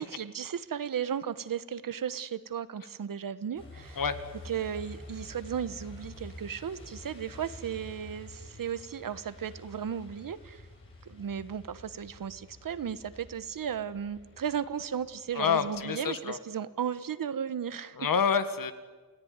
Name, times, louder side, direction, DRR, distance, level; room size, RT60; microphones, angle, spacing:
voice 1, 0.0-4.0 4.4-10.6 11.1-18.1, right 8 dB, 75° right, 14 dB, 1.2 m, -35 dB
Truck, 3.5-15.8, left 2 dB, 35° left, 7.9 m, -49 dB
voice 2, 15.3-16.4 18.0-18.7, left 6 dB, 75° left, 11 dB, 1.8 m, -27 dB
28.5 x 17.5 x 9.6 m, 1.4 s
wide cardioid pair, 160°, 34 cm